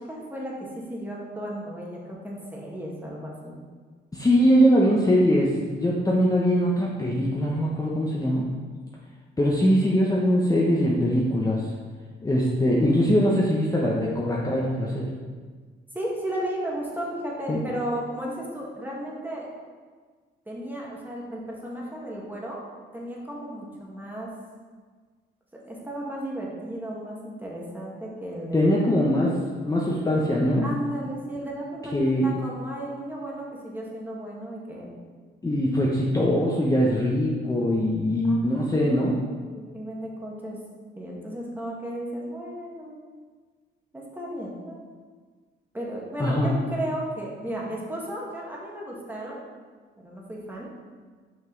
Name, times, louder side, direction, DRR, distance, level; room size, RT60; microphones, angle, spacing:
voice 1, 0.1-3.5 15.9-19.5 20.4-22.6 22.9-24.3 25.7-28.7 30.6-31.9 32.2-34.9 38.3-38.4 39.5-40.6 41.0-42.9 43.9-44.8 45.7-49.4 50.0-50.7, right 1 dB, 10° right, -4 dB, 1.7 m, -34 dB
voice 2, 4.1-8.5 9.4-11.7 12.2-15.1 17.5-17.6 28.5-29.4 29.6-30.7 31.9-32.3 35.4-39.2 46.2-46.6, equal, 15° left, -4 dB, 1.0 m, -22 dB
5.7 x 5.4 x 4.0 m, 1.5 s
cardioid pair, 90°, 20 cm